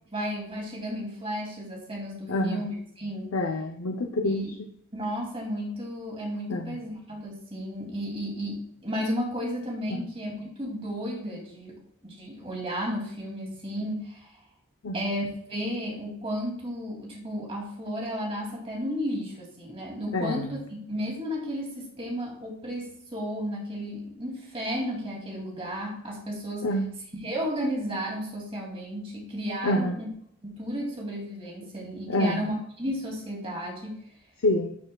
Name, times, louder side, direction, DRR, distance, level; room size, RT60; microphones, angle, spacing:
voice 1, 0.1-3.3 4.2-4.5 4.9-11.8 12.0-14.3 14.9-26.7 27.2-30.1 30.4-34.0, equal, 25° right, -2 dB, 2.6 m, -33 dB
voice 2, 2.3-2.6 3.3-4.4 6.5-6.8 9.9-10.1 14.8-15.1 20.1-20.5 26.6-26.9 29.6-30.0 32.1-32.5 34.4-34.8, left 1 dB, 90° left, 4 dB, 0.7 m, -27 dB
12.0 x 6.7 x 2.3 m, 0.68 s
head